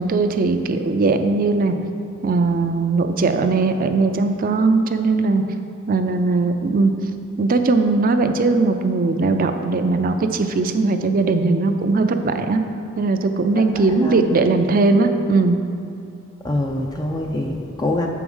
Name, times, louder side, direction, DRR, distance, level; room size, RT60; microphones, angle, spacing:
voice 1, 0.0-1.8 2.2-5.4 5.9-6.9 7.4-12.6 13.0-15.6, right 3 dB, 45° right, 7 dB, 0.4 m, -19 dB
voice 2, 13.5-14.3 16.4-18.1, left 1 dB, 20° left, 1 dB, 0.4 m, -25 dB
7.0 x 4.7 x 5.4 m, 2.6 s
head